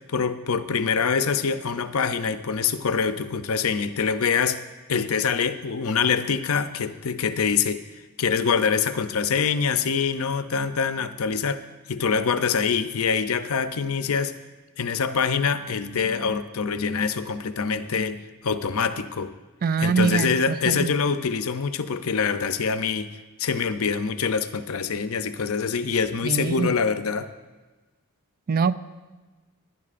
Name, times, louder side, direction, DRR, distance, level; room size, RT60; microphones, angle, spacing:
voice 1, 0.1-4.6 4.9-7.8 8.2-11.6 11.9-14.3 14.8-19.3 19.8-23.1 23.4-27.3, left 6 dB, 70° left, 11 dB, 0.6 m, -25 dB
voice 2, 19.6-20.9 26.2-26.7 28.5-28.8, right 5 dB, 40° right, 14 dB, 0.4 m, -23 dB
23.5 x 10.5 x 2.5 m, 1.2 s
head